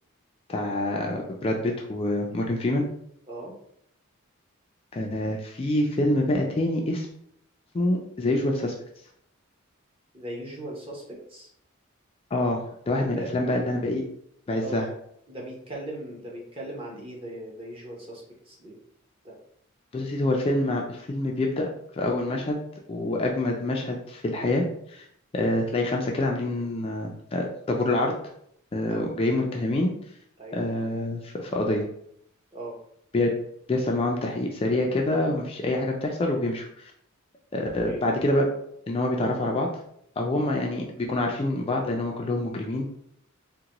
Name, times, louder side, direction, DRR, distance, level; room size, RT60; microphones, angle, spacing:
voice 1, 0.5-2.9 4.9-7.1 7.7-8.7 12.3-12.6 12.9-14.0 14.5-14.9 19.9-21.7 21.9-22.6 22.9-25.0 25.3-28.1 28.7-29.9 30.5-31.8 33.1-33.3 33.7-36.9 37.5-38.5 38.9-39.7 40.2-42.9, left 1 dB, 25° left, 1 dB, 0.3 m, -26 dB
voice 2, 10.1-11.5 13.1-13.3 14.5-14.8 15.3-18.8 19.2-19.4 23.1-23.3 28.8-29.1 30.4-30.7 32.5-32.8 37.8-38.1, right 1 dB, 25° right, -3 dB, 0.8 m, -39 dB
3.7 x 2.2 x 2.9 m, 0.70 s
head